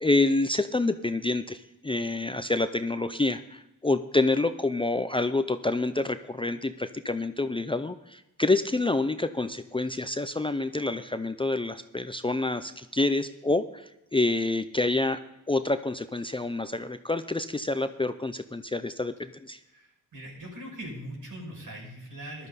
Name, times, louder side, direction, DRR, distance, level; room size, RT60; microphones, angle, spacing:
voice 1, 0.0-15.2 15.5-19.6, left 2 dB, 15° left, 10 dB, 0.5 m, -27 dB
voice 2, 19.6-22.5, right 1 dB, 65° right, -1 dB, 6.0 m, -41 dB
14.5 x 12.0 x 4.1 m, 0.93 s
cardioid pair, 80°, 35 cm